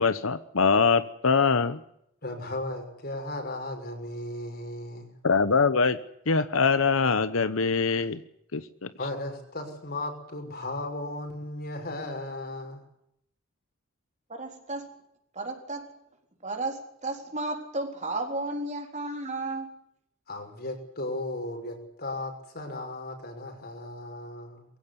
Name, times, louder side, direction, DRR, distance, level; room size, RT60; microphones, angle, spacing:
voice 1, 0.0-1.8 5.2-6.0 6.3-8.2 8.5-8.9, left 5 dB, 80° left, 13 dB, 1.0 m, -23 dB
voice 2, 2.2-5.1 9.0-12.8 20.3-24.7, left 1 dB, 50° left, 4 dB, 6.0 m, -36 dB
voice 3, 14.3-15.0 15.3-15.9 16.4-19.8, right 2 dB, 35° right, 4 dB, 4.0 m, -33 dB
22.5 x 16.0 x 9.8 m, 0.76 s
head